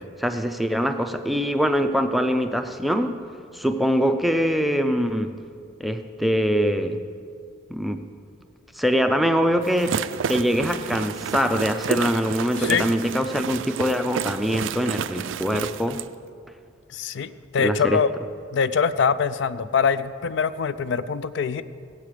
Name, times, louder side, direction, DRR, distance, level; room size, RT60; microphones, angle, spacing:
voice 1, 0.0-3.2 3.5-5.4 5.8-7.0 7.7-8.1 8.7-10.0 10.3-16.0 17.6-18.0, equal, ahead, 6 dB, 0.4 m, -23 dB
sound 1, 9.6-16.1, right 7 dB, 70° right, 0.3 m, -31 dB
voice 2, 16.9-18.1 18.5-21.6, left 6 dB, 60° left, 13 dB, 0.4 m, -23 dB
17.0 x 8.2 x 4.9 m, 2.3 s
head